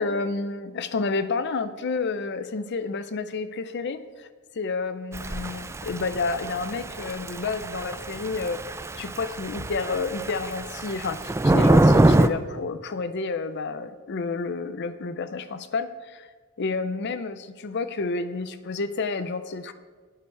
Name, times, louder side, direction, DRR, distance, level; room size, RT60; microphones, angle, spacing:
voice 1, 0.0-4.3 4.5-8.6 9.0-16.3 16.6-19.7, left 4 dB, 50° left, 12 dB, 0.5 m, -30 dB
Thunder / Rain, 5.1-12.3, right 1 dB, 10° right, 0.3 m, -24 dB
11.0 x 9.7 x 4.6 m, 1.5 s
head